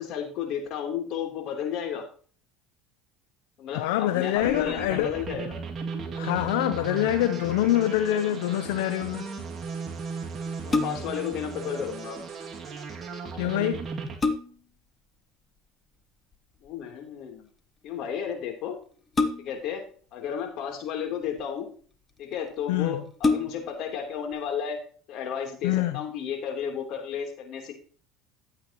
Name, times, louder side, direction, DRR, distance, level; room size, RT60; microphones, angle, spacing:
voice 1, 0.0-2.0 3.6-5.5 10.6-12.2 16.6-17.5 17.8-18.8 19.4-19.8 20.1-21.7 22.2-24.8 25.1-27.7, left 8 dB, 55° left, 3.3 m, -33 dB
voice 2, 3.7-5.2 6.1-9.3 13.3-13.9 22.7-23.0 25.6-26.0, left 13 dB, 80° left, 0.6 m, -25 dB
sound 1, 4.3-14.2, right 5 dB, 30° right, 2.3 m, -36 dB
sound 2, 10.7-11.3 13.3-13.4 13.8-14.8 16.3-16.7 19.1-19.8 20.7-21.4 22.2-22.3 22.6-22.7 23.1-23.8 24.3-24.4, left 3 dB, 25° left, 1.1 m, -28 dB
13.5 x 8.4 x 3.0 m
supercardioid pair, 95°, 0 cm